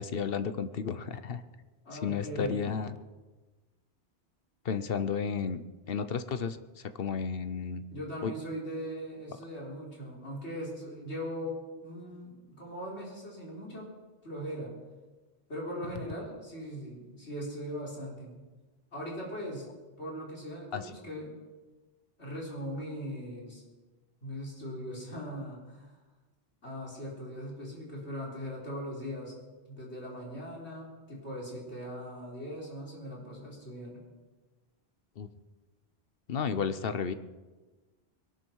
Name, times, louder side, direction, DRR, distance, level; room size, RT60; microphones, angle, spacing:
voice 1, 0.0-1.4 1.9-2.9 4.6-6.6 7.0-7.8 8.2-8.3 20.7-20.9 35.2-35.3 36.3-37.1, left 6 dB, 60° left, 11 dB, 1.0 m, -32 dB
voice 2, 1.8-2.8 7.9-13.9 14.2-14.7 15.5-18.4 18.9-19.7 20.0-21.4 22.2-23.6 24.2-25.9 26.6-29.3 29.7-34.0, equal, 85° left, -3 dB, 4.6 m, -40 dB
22.0 x 12.0 x 4.7 m, 1.3 s
omnidirectional pair, 1.1 m